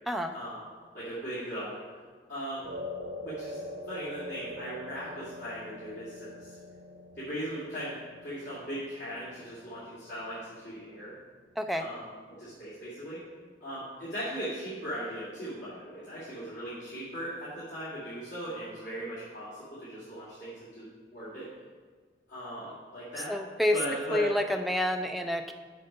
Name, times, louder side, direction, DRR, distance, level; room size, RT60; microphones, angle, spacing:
voice 1, 0.9-1.8 2.3-2.6 3.2-3.6 3.9-6.6 7.2-8.0 8.2-11.1 11.7-12.1 12.4-13.2 13.6-20.9 21.1-21.5 22.3-23.3 23.7-24.3, equal, 85° left, -10 dB, 2.4 m, -38 dB
sound 1, 2.6-11.1, left 1 dB, 50° right, 1.8 m, -44 dB
voice 2, 11.6-11.9 23.3-23.8 24.1-25.5, left 1 dB, ahead, 5 dB, 0.4 m, -28 dB
6.5 x 6.5 x 5.2 m, 1.5 s
head